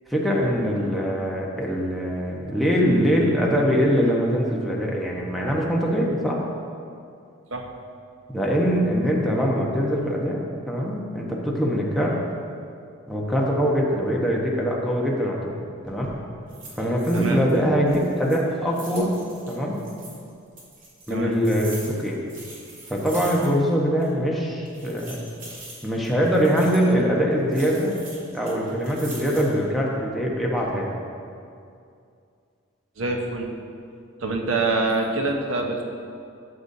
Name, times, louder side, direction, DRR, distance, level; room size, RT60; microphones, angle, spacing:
voice 1, 0.1-6.4 8.3-10.4 10.7-12.2 13.1-15.4 15.8-16.1 16.8-19.1 19.5-19.8 21.1-22.2 22.9-25.2 25.8-28.0 28.3-30.9, equal, ahead, -4 dB, 1.0 m, -23 dB
sound 1, 15.8-16.1 16.5-17.6 17.8-20.2 20.6-23.7 24.0-24.1 24.6-26.9 27.5-29.6 30.1-30.6, right 2 dB, 40° right, 2.0 m, -42 dB
voice 2, 33.0-33.5 34.2-35.8, right 3 dB, 75° right, 2 dB, 0.9 m, -25 dB
12.5 x 7.0 x 2.7 m, 2.4 s
head